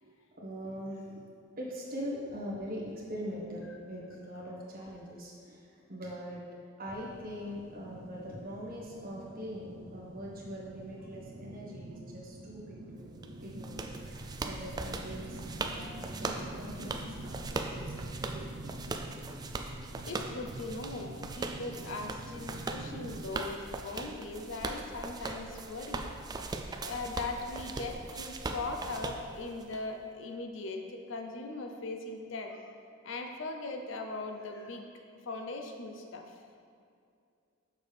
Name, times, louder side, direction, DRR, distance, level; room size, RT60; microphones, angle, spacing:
voice 1, 0.0-1.3 1.6-6.4 6.8-13.1 13.4-18.5, equal, 45° right, -4 dB, 1.4 m, -42 dB
sound 1, 6.9-23.2, right 2 dB, 65° right, 0.7 m, -46 dB
sound 2, 13.2-29.8, right 3 dB, 20° right, 0.3 m, -40 dB
voice 2, 20.0-26.1 26.8-32.7 33.0-34.9 35.3-36.3, left 3 dB, 65° left, 4 dB, 0.6 m, -39 dB
6.9 x 6.5 x 3.4 m, 2.4 s
head